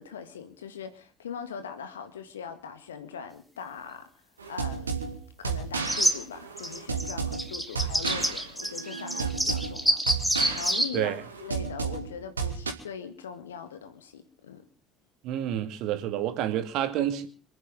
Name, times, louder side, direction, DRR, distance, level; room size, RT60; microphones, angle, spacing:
voice 1, 0.0-4.1 4.5-14.7, left 7 dB, 75° left, 1.8 m, -41 dB
sound 1, 4.4-12.7, right 5 dB, 80° right, 1.9 m, -33 dB
sound 2, 5.8-6.1 6.6-10.9, equal, ahead, 3.0 m, -27 dB
voice 2, 15.2-17.3, right 11 dB, 55° right, 2.5 m, -29 dB
27.0 x 9.8 x 5.4 m
figure-of-eight pair, 55°, 0 cm